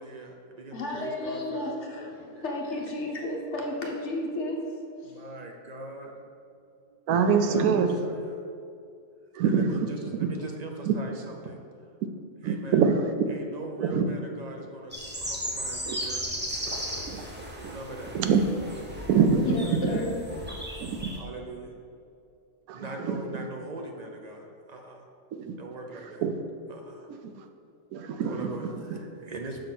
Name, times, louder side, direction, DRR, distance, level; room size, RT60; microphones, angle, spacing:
voice 1, 0.0-1.8 2.4-2.5 5.1-6.1 7.3-8.4 9.4-11.6 12.4-12.8 13.3-14.9 15.2-16.5 17.6-18.2 19.5-19.8 21.1-21.8 22.7-25.0 25.4-26.3 26.7-27.1 28.2-29.6, right 2 dB, 60° right, 2 dB, 0.4 m, -41 dB
voice 2, 0.7-4.6 5.0-5.2 19.4-20.2, left 2 dB, 55° left, 0 dB, 1.2 m, -32 dB
voice 3, 7.1-8.0 9.3-10.3 10.9-11.0 12.4-13.0 13.8-14.1 15.9-16.0 17.1-17.2 17.6-17.8 18.1-18.4 19.1-20.0 20.8-21.1 22.7-23.5 25.3-25.5 25.9-26.3 27.1-27.2 27.9-28.5 28.9-29.0, right 6 dB, 80° right, 7 dB, 1.0 m, -25 dB
sound 1, 14.9-21.2, equal, 10° right, 0.5 m, -36 dB
6.5 x 3.8 x 5.9 m, 2.5 s
omnidirectional pair, 1.5 m